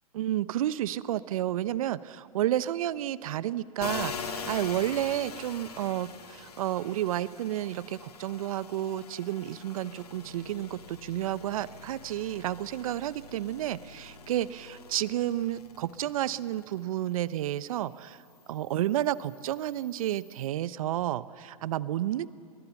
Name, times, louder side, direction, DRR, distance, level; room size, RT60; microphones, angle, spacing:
voice 1, 0.1-18.2 18.5-22.3, right 13 dB, 65° right, 18 dB, 0.8 m, -31 dB
sound 1, 3.8-17.2 17.6-20.5, left 5 dB, 80° left, 2.1 m, -44 dB
22.0 x 20.5 x 7.1 m, 2.3 s
hypercardioid pair, 115°, 19 cm